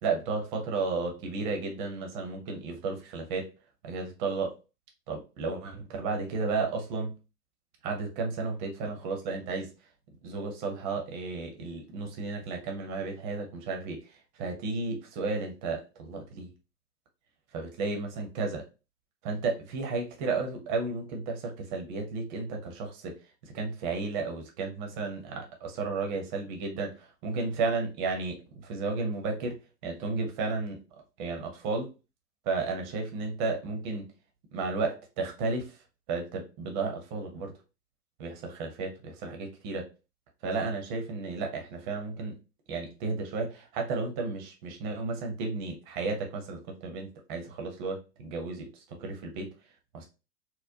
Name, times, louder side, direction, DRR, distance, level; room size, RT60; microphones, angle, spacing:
voice 1, 0.0-3.5 3.8-4.5 5.1-7.1 7.8-9.7 10.2-16.5 17.5-18.6 19.2-23.1 23.4-29.6 29.8-30.8 31.2-31.9 32.4-34.1 34.5-35.8 36.1-37.5 38.2-38.9 39.2-39.8 40.4-42.4 42.7-49.5 49.9-50.1, right 3 dB, 30° right, 3 dB, 0.8 m, -33 dB
4.1 x 2.1 x 2.6 m, 0.31 s
figure-of-eight pair, 115°, 50 cm